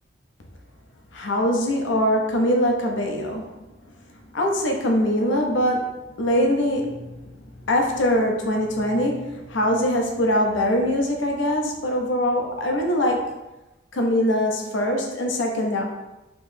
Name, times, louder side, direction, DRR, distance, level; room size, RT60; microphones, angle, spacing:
voice 1, 1.1-3.5 4.3-13.3 13.9-15.8, equal, 75° left, 1 dB, 0.6 m, -23 dB
3.4 x 3.0 x 2.6 m, 1.0 s
head